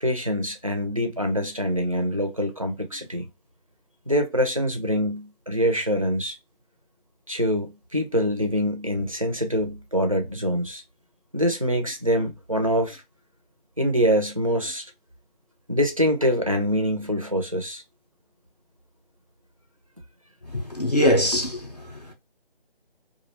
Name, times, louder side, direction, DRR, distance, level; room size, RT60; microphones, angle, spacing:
voice 1, 0.0-3.3 4.1-6.4 7.3-10.8 11.3-13.0 13.8-14.8 15.7-17.8, equal, 35° right, 0.4 m, -24 dB
voice 2, 20.4-22.1, equal, 45° left, 0.5 m, -23 dB
2.4 x 2.1 x 2.7 m
figure-of-eight pair, 160°, 30 cm